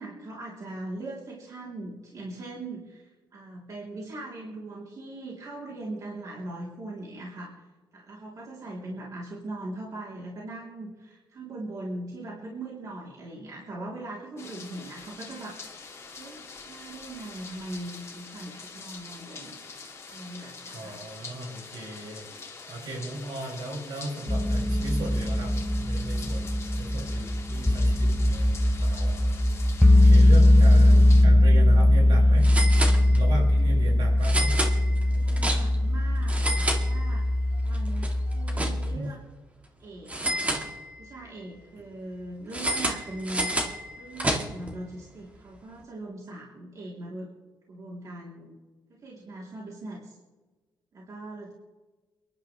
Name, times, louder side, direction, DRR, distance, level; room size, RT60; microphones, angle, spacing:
voice 1, 0.0-7.5 7.9-15.6 16.2-19.5 20.1-21.0 23.0-23.1 30.4-31.4 33.7-34.2 35.0-37.3 37.6-39.2 39.8-40.5 41.0-43.5 44.0-47.3 47.7-48.5 48.9-50.1 50.9-51.5, right 2 dB, 50° right, -4 dB, 3.5 m, -40 dB
sound 1, 14.4-31.2, left 4 dB, 35° left, 2.4 m, -44 dB
voice 2, 20.7-26.5 26.8-29.2 29.5-29.6 30.0-32.5 33.0-34.5 38.9-39.1, right 1 dB, 80° right, -2 dB, 6.6 m, -36 dB
sound 2, 24.3-39.0, left 1 dB, 5° left, 0.5 m, -20 dB
sound 3, 31.2-31.4 31.7-31.8 32.4-33.5 34.2-35.9 36.2-37.4 37.7-39.1 40.1-41.2 42.5-44.8, right 1 dB, 15° right, 2.0 m, -30 dB
29.5 x 11.5 x 3.4 m, 1.3 s
wide cardioid pair, 155°, 8 cm